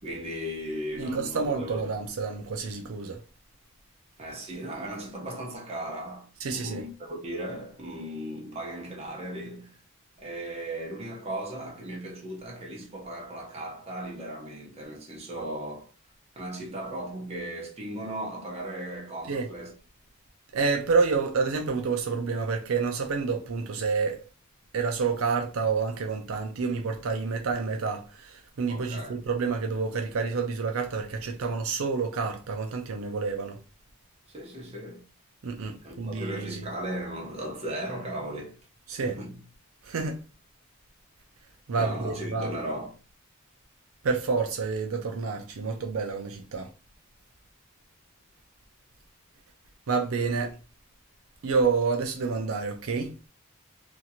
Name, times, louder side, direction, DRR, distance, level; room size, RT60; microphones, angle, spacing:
voice 1, 0.0-1.8 4.2-9.8 10.2-15.9 16.4-19.7 28.7-29.2 34.3-35.0 35.8-38.6 38.9-39.4 41.8-42.9, right 1 dB, 30° right, 0.8 m, -37 dB
voice 2, 1.0-3.2 6.4-6.8 19.3-19.5 20.5-24.2 24.7-33.6 35.4-36.6 38.9-39.2 39.8-40.2 41.7-42.5 44.0-46.7 49.9-50.6 51.4-53.2, right 4 dB, 75° right, 0.5 m, -28 dB
2.8 x 2.5 x 2.8 m
head